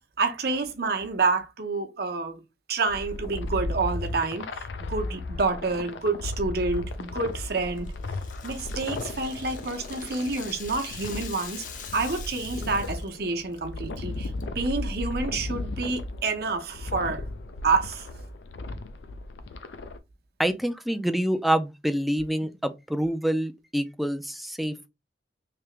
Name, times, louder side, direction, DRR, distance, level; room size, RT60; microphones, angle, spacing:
voice 1, 0.2-2.4 2.7-7.9 8.4-11.6 11.9-17.2 17.6-18.1, right 3 dB, 60° right, 0.8 m, -28 dB
sound 1, 2.9-20.0, left 2 dB, 90° left, 0.5 m, -35 dB
Rattle (instrument), 7.3-13.1 13.4-13.6 13.9-14.4, left 7 dB, 50° left, 0.7 m, -44 dB
voice 2, 20.4-24.8, right 1 dB, ahead, 0.3 m, -26 dB
3.3 x 2.8 x 3.2 m
head